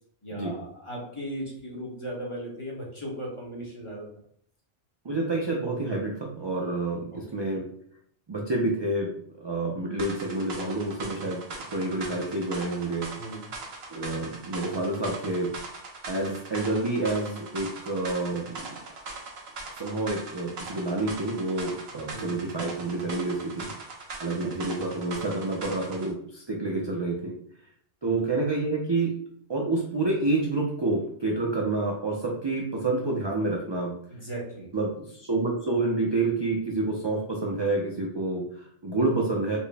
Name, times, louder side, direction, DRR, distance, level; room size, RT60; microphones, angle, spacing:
voice 1, 0.2-4.1 7.1-7.6 13.1-13.5 16.2-16.3 22.1-22.4 24.3-24.6 26.8-26.9 28.0-28.2 34.1-34.7, right 1 dB, 30° left, -3 dB, 0.9 m, -37 dB
voice 2, 5.0-7.6 8.3-9.1 9.4-13.1 13.9-15.5 16.1-18.7 19.8-23.7 24.2-27.3 28.0-29.1 29.5-33.9 34.7-39.6, right 2 dB, 40° right, -2 dB, 0.3 m, -28 dB
sound 1, 10.0-26.1, right 3 dB, 65° right, 1.0 m, -40 dB
4.2 x 2.1 x 3.4 m, 0.65 s
omnidirectional pair, 1.2 m